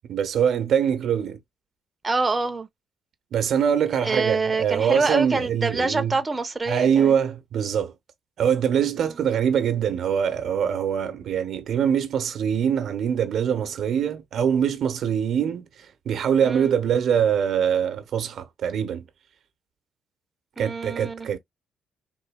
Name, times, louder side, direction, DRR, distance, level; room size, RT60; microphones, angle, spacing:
voice 1, 0.1-1.4 3.3-6.2 6.7-7.9 8.4-19.1 20.6-21.4, right 8 dB, 70° right, 0.8 m, -23 dB
voice 2, 2.0-2.7 4.0-7.2 16.4-16.7 20.6-21.3, right 3 dB, 25° right, 0.6 m, -26 dB
3.8 x 2.6 x 2.3 m
cardioid pair, 90°, 0 cm